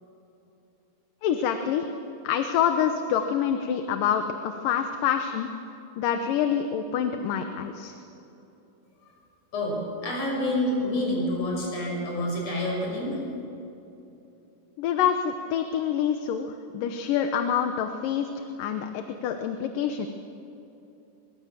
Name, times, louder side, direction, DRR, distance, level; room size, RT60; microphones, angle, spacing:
voice 1, 1.2-1.9 2.2-5.5 6.0-7.9 14.8-20.1, left 8 dB, 80° left, 7 dB, 2.6 m, -26 dB
voice 2, 9.5-13.2, left 1 dB, 50° left, -1 dB, 6.9 m, -28 dB
24.0 x 23.0 x 7.4 m, 3.0 s
omnidirectional pair, 3.9 m